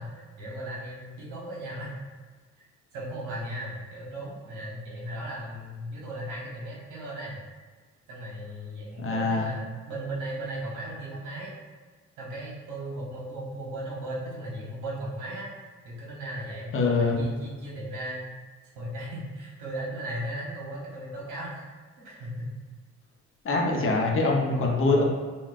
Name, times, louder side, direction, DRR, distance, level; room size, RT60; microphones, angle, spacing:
voice 1, 0.0-2.1 2.6-2.7 2.9-7.4 8.1-11.5 12.2-15.5 15.8-18.2 18.7-21.7 22.0-22.5, right 1 dB, 85° right, -5 dB, 1.2 m, -36 dB
voice 2, 9.0-9.5 16.7-17.2 23.4-25.1, left 3 dB, 45° left, -1 dB, 0.8 m, -24 dB
5.3 x 2.4 x 2.5 m, 1.5 s
cardioid pair, 90°, 30 cm